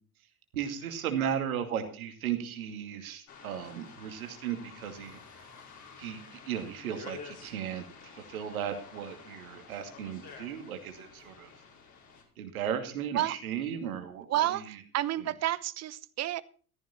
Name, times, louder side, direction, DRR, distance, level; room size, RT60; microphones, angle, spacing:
voice 1, 0.5-5.2 6.0-7.8 8.1-11.5 12.4-14.7, right 9 dB, 70° right, 7 dB, 2.6 m, -36 dB
sound 1, 3.3-12.2, left 5 dB, 40° left, 5.2 m, -50 dB
voice 2, 14.3-16.4, right 13 dB, 35° right, 19 dB, 1.0 m, -30 dB
14.5 x 14.5 x 4.3 m, 0.40 s
figure-of-eight pair, 65°, 44 cm